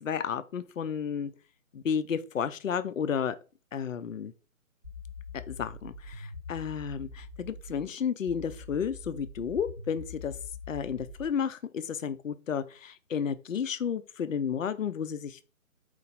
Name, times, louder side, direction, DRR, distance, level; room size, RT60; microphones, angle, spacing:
voice 1, 0.0-1.3 1.7-3.4 3.7-4.3 5.5-10.3 10.7-15.4, left 7 dB, 65° left, 0.5 m, -32 dB
sound 1, 4.8-7.8 8.3-11.3, left 3 dB, 20° right, 0.6 m, -44 dB
4.5 x 2.5 x 4.0 m
figure-of-eight pair, 145°, 41 cm